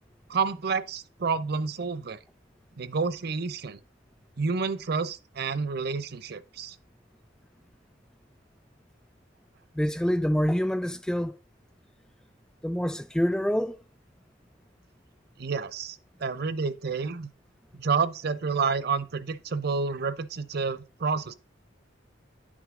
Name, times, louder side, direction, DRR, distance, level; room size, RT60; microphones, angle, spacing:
voice 1, 0.3-2.2 2.8-3.8 4.4-6.8 15.4-17.3 17.8-21.3, right 5 dB, 55° right, 0.6 m, -29 dB
voice 2, 9.7-11.3 12.6-13.8, equal, 5° left, 0.4 m, -26 dB
10.0 x 6.2 x 3.7 m
head